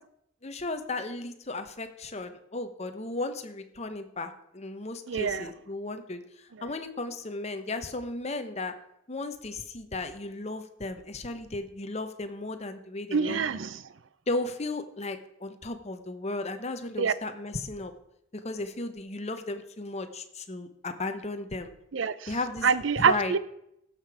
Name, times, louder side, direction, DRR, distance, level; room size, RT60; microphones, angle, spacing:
voice 1, 0.4-6.2 6.6-8.7 9.1-13.4 14.3-17.9 18.4-21.7 22.3-22.7 23.0-23.3, left 2 dB, 35° left, 1.0 m, -35 dB
voice 2, 5.1-5.5 13.1-13.8 17.0-17.1 21.9-22.3 22.6-23.4, right 6 dB, 75° right, 0.6 m, -26 dB
16.0 x 6.8 x 4.8 m
head